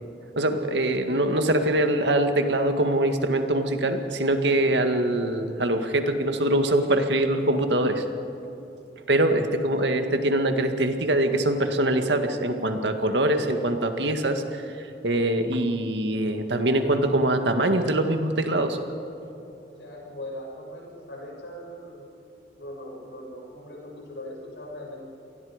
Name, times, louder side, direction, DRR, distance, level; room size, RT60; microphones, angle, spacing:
voice 1, 0.4-8.0 9.1-18.8, right 1 dB, 80° right, 6 dB, 1.9 m, -23 dB
voice 2, 19.8-22.0 22.6-25.0, left 1 dB, 90° left, -1 dB, 6.7 m, -40 dB
27.5 x 19.5 x 5.1 m, 3.0 s
head